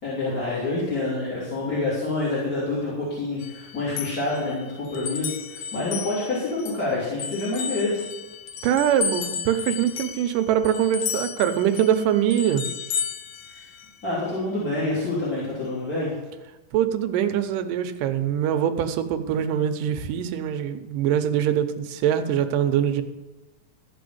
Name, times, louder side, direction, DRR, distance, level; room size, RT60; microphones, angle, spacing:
voice 1, 0.0-8.0 13.5-13.7 14.0-16.1, left 2 dB, 25° left, -9 dB, 3.5 m, -27 dB
sound 1, 3.4-6.9 7.2-14.1, left 7 dB, 75° left, 1.5 m, -33 dB
voice 2, 8.6-12.7 16.7-23.0, right 10 dB, 80° right, 8 dB, 2.3 m, -23 dB
14.0 x 5.7 x 7.9 m, 1.1 s
omnidirectional pair, 3.9 m